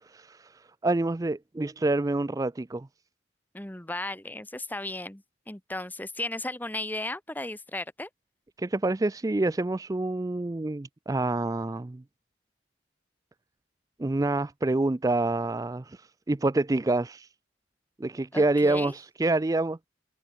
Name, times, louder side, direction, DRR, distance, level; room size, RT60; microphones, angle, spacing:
voice 1, 0.1-0.5 0.8-2.9 8.6-12.0 14.0-17.3 18.0-19.8, right 2 dB, 20° right, 0.4 m, -27 dB
voice 2, 3.5-8.1 18.3-18.9, left 2 dB, 10° left, 1.0 m, -35 dB
head